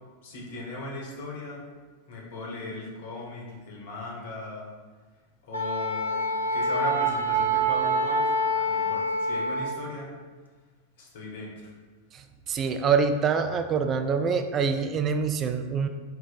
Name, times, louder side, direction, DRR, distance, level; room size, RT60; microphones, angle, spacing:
voice 1, 0.2-1.6 2.1-4.7 5.4-6.2 6.5-8.2 8.5-10.1 11.0-11.7, left 2 dB, 55° left, -2 dB, 1.0 m, -37 dB
Wind instrument woodwind instrument, 5.5-9.8, right 1 dB, 85° left, 0.4 m, -26 dB
voice 2, 12.1-15.9, right 5 dB, 30° right, 7 dB, 0.3 m, -25 dB
4.5 x 2.1 x 4.0 m, 1.4 s
figure-of-eight pair, 90°, 0 cm